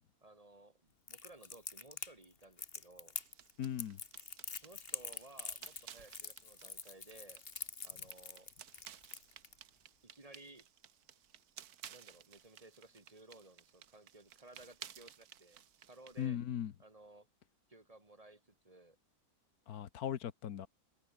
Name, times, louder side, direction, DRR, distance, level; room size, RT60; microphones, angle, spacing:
voice 1, 0.2-3.2 4.6-7.4 7.8-8.5 10.0-10.7 11.9-16.4 16.8-17.3 17.7-19.0, right 2 dB, 25° right, 2.2 m, -58 dB
Crackle, 1.1-9.5, left 5 dB, 40° left, 1.7 m, -45 dB
sound 1, 3.2-16.3, right 9 dB, 90° right, 1.6 m, -57 dB
voice 2, 3.6-4.0 16.2-16.7 19.7-20.7, left 9 dB, 85° left, 1.5 m, -38 dB
omnidirectional pair, 1.6 m